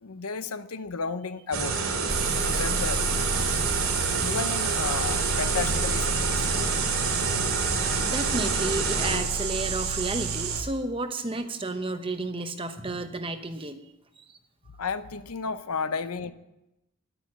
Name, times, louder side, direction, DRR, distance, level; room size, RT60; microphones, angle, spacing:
voice 1, 0.0-1.9 2.4-3.1 4.2-6.5 8.0-8.1 14.8-16.3, left 5 dB, 85° left, 12 dB, 0.8 m, -33 dB
sound 1, 1.5-9.2, right 4 dB, 70° right, 2.7 m, -28 dB
sound 2, 2.1-10.6, right 5 dB, 90° right, 2.4 m, -29 dB
voice 2, 8.0-13.8, right 2 dB, 25° right, 8 dB, 0.9 m, -32 dB
11.5 x 8.8 x 9.8 m, 0.92 s
head